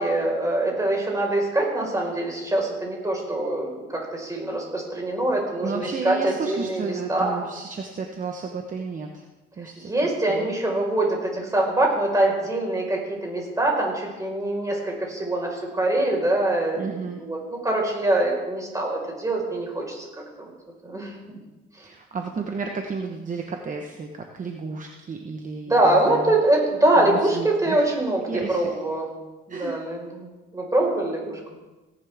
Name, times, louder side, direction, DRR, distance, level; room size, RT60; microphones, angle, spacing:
voice 1, 0.0-7.4 9.9-20.0 20.4-20.5 20.8-21.4 25.7-29.1 29.5-31.4, right 1 dB, 15° right, -1 dB, 4.9 m, -24 dB
voice 2, 5.6-9.2 9.6-10.5 16.8-17.2 21.8-26.3 27.0-27.8 28.3-28.7 29.5-29.7, right 4 dB, 40° right, 3 dB, 1.2 m, -32 dB
17.5 x 11.0 x 3.6 m, 1.1 s
cardioid pair, 90°, 20 cm